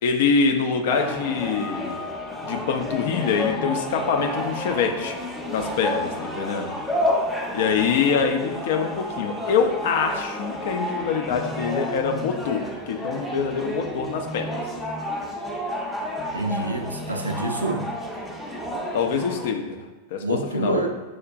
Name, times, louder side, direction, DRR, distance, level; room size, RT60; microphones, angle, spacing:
voice 1, 0.0-2.0 2.4-5.1 5.5-6.7 7.5-14.5 18.9-19.8 20.1-20.8, left 6 dB, 55° left, 4 dB, 0.4 m, -24 dB
sound 1, 0.9-19.5, left 1 dB, ahead, 0.5 m, -31 dB
voice 2, 16.3-17.9 20.2-20.9, right 2 dB, 80° right, 4 dB, 0.4 m, -26 dB
6.0 x 2.1 x 2.5 m, 1.2 s
figure-of-eight pair, 90°, 0 cm